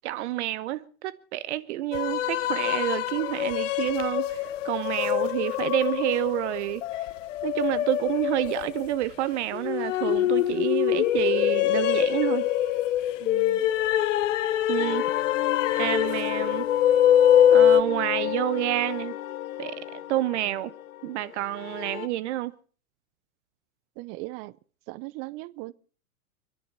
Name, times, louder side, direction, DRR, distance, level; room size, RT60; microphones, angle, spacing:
voice 1, 0.0-7.1 7.4-12.5 14.7-15.1 15.8-16.7 17.5-19.2 19.6-20.7 21.0-22.5, right 15 dB, 55° right, 1.0 m, -29 dB
sound 1, 1.9-17.8, left 11 dB, 60° left, 1.3 m, -24 dB
voice 2, 13.2-13.7 24.0-24.6 24.9-25.7, right 21 dB, 35° right, 0.7 m, -38 dB
sound 2, 14.8-22.1, left 14 dB, 75° left, 1.1 m, -32 dB
30.0 x 11.0 x 4.3 m
hypercardioid pair, 125°, 42 cm